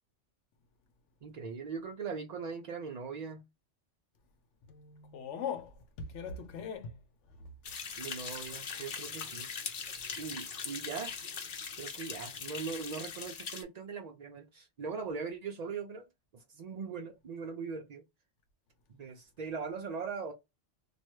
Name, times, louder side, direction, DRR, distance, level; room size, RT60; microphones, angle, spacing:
voice 1, 1.2-3.4 8.0-9.5 10.2-11.1 11.8-16.1 16.3-18.0 18.9-20.3, right 5 dB, 65° right, 0.4 m, -40 dB
voice 2, 4.7-7.0 7.4-7.5, left 6 dB, 75° left, 0.9 m, -40 dB
sound 1, 7.6-13.6, left 6 dB, 50° left, 0.7 m, -41 dB
3.1 x 2.3 x 3.0 m
omnidirectional pair, 1.2 m